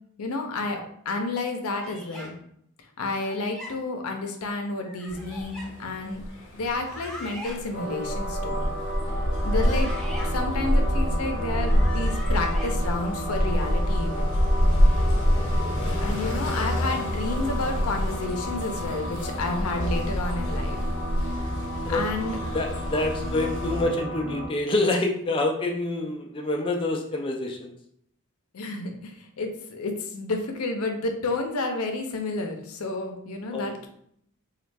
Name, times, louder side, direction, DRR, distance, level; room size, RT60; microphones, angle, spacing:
voice 1, 0.2-2.3 3.0-6.2 6.5-8.7 9.4-9.9 10.2-14.3 14.9-15.1 16.0-20.8 21.4-21.5 21.9-22.4 28.5-33.9, left 3 dB, 85° left, 4 dB, 0.6 m, -30 dB
sound 1, 1.7-2.3 3.1-3.7 4.8-5.7 6.7-7.6 9.2-10.3 11.4-12.7, left 1 dB, ahead, 0.7 m, -41 dB
sound 2, 5.1-23.8, equal, 60° left, 0.8 m, -27 dB
sound 3, 7.7-24.5, equal, 40° right, 0.8 m, -34 dB
voice 2, 22.5-27.7 33.5-33.9, left 2 dB, 25° left, 2 dB, 0.3 m, -27 dB
3.2 x 2.3 x 3.3 m, 0.70 s
head